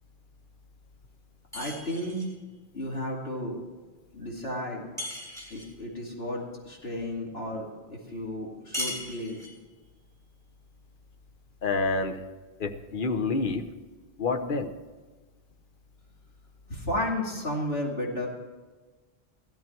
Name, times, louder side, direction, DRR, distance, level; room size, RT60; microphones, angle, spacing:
voice 1, 1.5-2.2 2.7-3.6 4.1-4.8 5.5-9.4 16.7-18.3, left 1 dB, 70° left, -2 dB, 2.7 m, -33 dB
sound 1, 1.5-2.4 5.0-5.8 8.7-9.7, left 1 dB, 5° left, 3.6 m, -37 dB
voice 2, 11.6-12.2 12.6-13.7 14.2-14.7, left 3 dB, 55° left, 7 dB, 1.2 m, -28 dB
16.0 x 13.5 x 4.5 m, 1.3 s
omnidirectional pair, 1.1 m